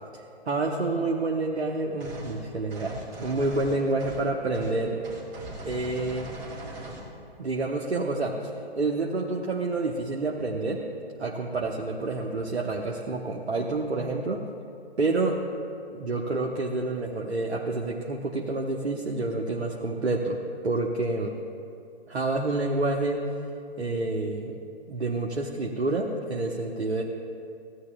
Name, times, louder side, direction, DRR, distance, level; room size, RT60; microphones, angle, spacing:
voice 1, 0.1-5.0 5.6-6.3 7.4-10.8 11.2-14.4 15.0-15.4 15.9-21.4 22.1-23.2 23.8-24.6 24.9-27.0, right 2 dB, 85° right, 0 dB, 1.0 m, -28 dB
sound 1, 2.0-2.4 2.7-4.3 4.5-4.7 5.0-7.1, right 1 dB, 25° right, 2.5 m, -40 dB
16.0 x 9.6 x 2.3 m, 2.5 s
figure-of-eight pair, 140°, 32 cm